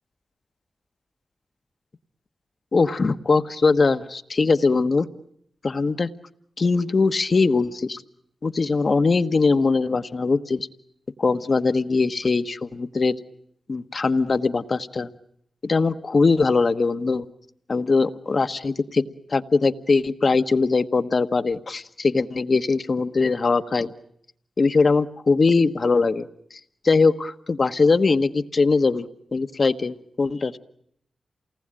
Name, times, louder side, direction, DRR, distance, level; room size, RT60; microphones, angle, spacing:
voice 1, 2.7-5.1 5.6-6.1 6.6-8.0 8.4-10.7 11.2-13.2 13.7-15.1 15.6-17.3 17.7-19.0 19.3-23.9 24.6-26.3 26.8-30.6, left 4 dB, 60° left, 9 dB, 1.2 m, -21 dB
28.0 x 19.5 x 9.0 m, 0.71 s
cardioid pair, 40°, 0 cm